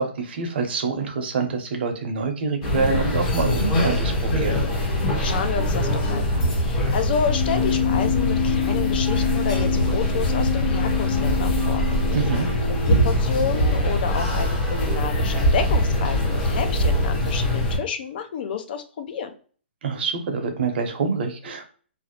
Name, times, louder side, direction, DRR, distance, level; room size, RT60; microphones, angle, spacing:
voice 1, 0.0-4.6 12.1-12.5 19.8-21.6, right 4 dB, 60° right, 5 dB, 0.6 m, -26 dB
sound 1, 2.6-17.8, equal, 30° left, 0.8 m, -23 dB
voice 2, 5.2-11.8 12.2-12.3 12.7-19.3, left 6 dB, 50° left, 8 dB, 0.4 m, -30 dB
Keyboard (musical), 7.2-13.2, left 10 dB, 80° left, 1.2 m, -27 dB
2.5 x 2.0 x 2.8 m, 0.42 s
hypercardioid pair, 145°, 7 cm